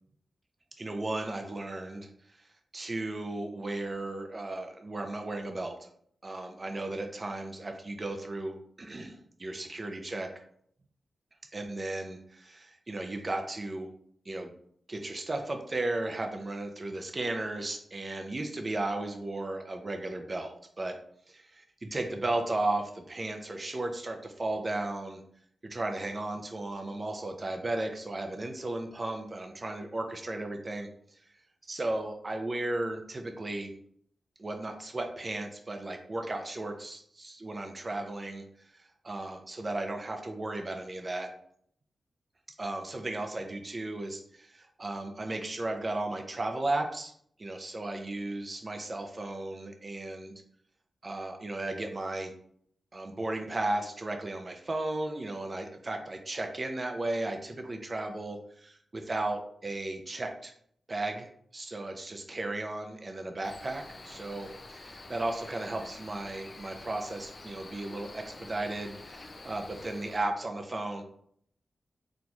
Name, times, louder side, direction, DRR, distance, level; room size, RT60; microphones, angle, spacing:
voice 1, 0.8-2.1 2.4-2.5 2.7-5.9 6.2-10.3 11.5-13.9 14.3-14.5 14.9-21.0 21.3-25.2 25.6-31.3 31.7-33.7 34.4-41.3 42.6-47.1 47.4-50.3 51.0-52.3 52.9-60.5 60.9-71.0, right 2 dB, 35° right, 4 dB, 0.4 m, -35 dB
Cricket, 63.4-70.2, left 2 dB, 40° left, 0.4 m, -47 dB
4.1 x 2.9 x 2.3 m, 0.65 s
wide cardioid pair, 100°, 0 cm